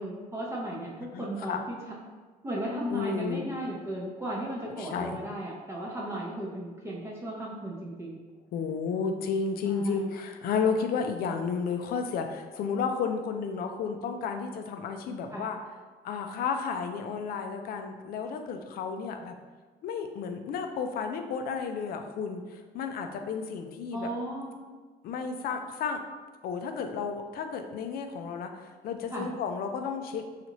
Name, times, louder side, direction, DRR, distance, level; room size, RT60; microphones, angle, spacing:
voice 1, 0.0-2.0 2.4-8.2 9.6-10.1 15.3-15.5 23.9-24.5 29.1-29.3, right 1 dB, 15° right, -4 dB, 0.6 m, -36 dB
voice 2, 1.1-1.6 2.9-3.5 4.8-5.2 8.5-15.6 16.0-19.4 19.8-24.1 25.0-26.0 26.4-30.3, left 5 dB, 60° left, 6 dB, 0.4 m, -32 dB
4.0 x 2.5 x 2.9 m, 1.4 s
cardioid pair, 110°, 17 cm